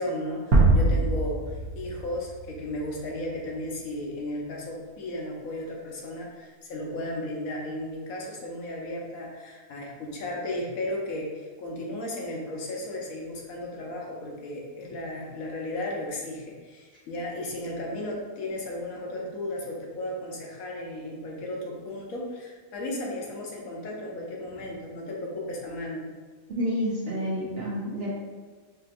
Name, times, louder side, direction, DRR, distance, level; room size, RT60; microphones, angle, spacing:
voice 1, 0.0-26.1, left 1 dB, 75° left, -2 dB, 1.2 m, -35 dB
sound 1, 0.5-3.4, right 2 dB, 85° right, 1.1 m, -24 dB
voice 2, 26.5-28.1, equal, 60° right, -5 dB, 0.7 m, -29 dB
4.9 x 2.8 x 2.5 m, 1.4 s
omnidirectional pair, 1.5 m